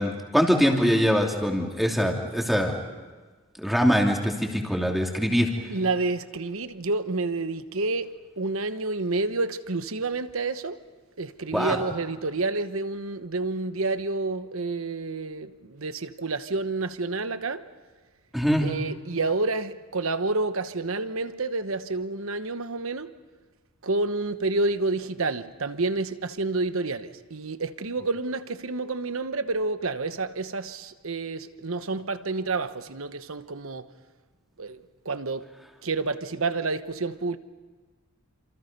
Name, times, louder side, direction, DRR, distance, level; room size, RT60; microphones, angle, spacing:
voice 1, 0.0-2.8 3.6-5.5 11.5-11.7 18.3-18.7, equal, ahead, 3.0 m, -23 dB
voice 2, 5.7-10.8 11.2-17.6 18.6-23.1 23.8-33.9 34.6-34.8 35.0-35.5 35.8-37.4, right 3 dB, 75° right, 1.1 m, -29 dB
29.0 x 27.0 x 5.4 m
head